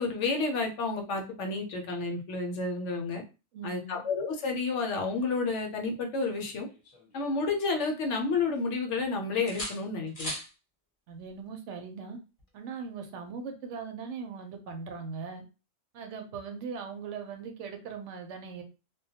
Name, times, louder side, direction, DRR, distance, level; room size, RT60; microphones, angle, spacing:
voice 1, 0.0-3.2 3.6-6.7 7.1-10.3, left 4 dB, 70° left, 3 dB, 0.9 m, -30 dB
voice 2, 3.5-4.0 11.1-12.2 12.5-15.4 15.9-18.6, right 5 dB, 70° right, 4 dB, 0.9 m, -40 dB
sound 1, 6.3-7.9 8.2-9.0 9.5-10.5 12.4-12.6, left 1 dB, 35° left, 0.7 m, -42 dB
2.2 x 2.1 x 2.7 m, 0.30 s
omnidirectional pair, 1.3 m